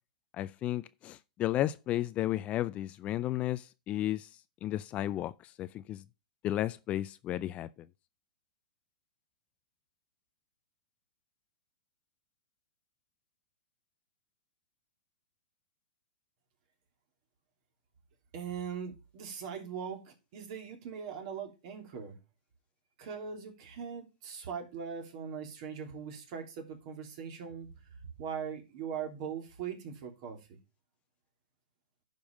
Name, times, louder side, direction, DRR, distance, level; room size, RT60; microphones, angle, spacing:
voice 1, 0.4-4.3 4.6-5.3 5.6-6.0 6.4-7.7, left 13 dB, 30° left, 0.4 m, -33 dB
voice 2, 18.3-22.2 23.0-27.7 28.2-30.6, right 7 dB, 50° right, 3.1 m, -40 dB
10.5 x 5.4 x 5.1 m
hypercardioid pair, 125°, 4 cm